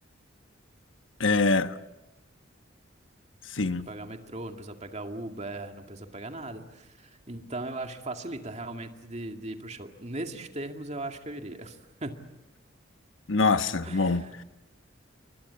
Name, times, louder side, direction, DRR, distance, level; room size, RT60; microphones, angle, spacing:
voice 1, 1.2-1.7 3.5-3.9 13.3-14.4, left 3 dB, 80° left, 1.3 m, -24 dB
voice 2, 3.9-12.2 13.8-14.3, right 2 dB, 35° right, 2.3 m, -38 dB
30.0 x 24.5 x 8.2 m
head